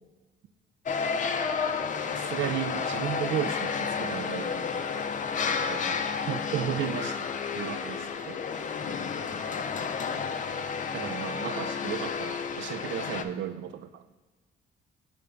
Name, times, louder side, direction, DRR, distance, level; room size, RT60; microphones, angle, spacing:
sound 1, 0.9-13.2, left 6 dB, 40° left, 0.5 m, -31 dB
voice 1, 2.0-5.0 5.5-6.0 6.3-7.3 7.5-8.7 10.9-14.0, right 10 dB, 70° right, 12 dB, 0.4 m, -34 dB
Bowed string instrument, 8.3-12.8, left 2 dB, 5° right, 1.0 m, -51 dB
6.7 x 3.4 x 5.0 m, 1.3 s
cardioid pair, 90°, 20 cm